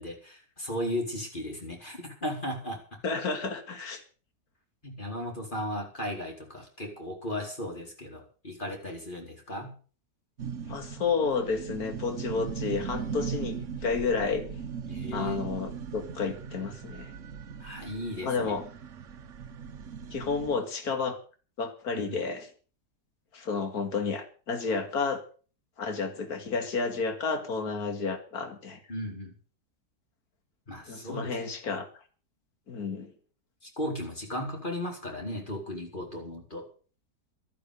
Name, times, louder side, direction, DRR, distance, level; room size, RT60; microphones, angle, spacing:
voice 1, 0.0-2.8 4.8-9.7 14.9-15.4 17.6-18.6 21.9-22.2 28.9-29.3 30.7-31.4 33.8-36.6, left 1 dB, 30° left, 1 dB, 4.6 m, -36 dB
voice 2, 3.0-4.0 10.7-14.5 15.1-17.1 18.2-18.7 20.1-21.2 21.6-22.5 23.3-25.2 25.8-28.8 30.9-31.9 32.7-33.1, left 4 dB, 65° left, 7 dB, 2.5 m, -31 dB
sound 1, 10.4-20.5, right 6 dB, 55° right, 1.2 m, -38 dB
13.0 x 12.0 x 6.7 m, 0.40 s
omnidirectional pair, 1.7 m